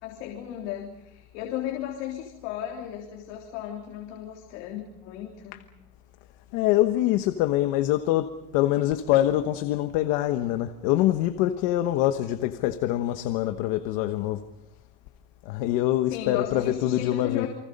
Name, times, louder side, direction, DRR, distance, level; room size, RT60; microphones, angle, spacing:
voice 1, 0.0-5.6 16.1-17.5, left 11 dB, 80° left, 3.6 m, -35 dB
voice 2, 6.5-14.4 15.4-17.5, left 14 dB, 55° left, 1.2 m, -24 dB
29.5 x 24.5 x 5.4 m
cardioid pair, 180°, 36 cm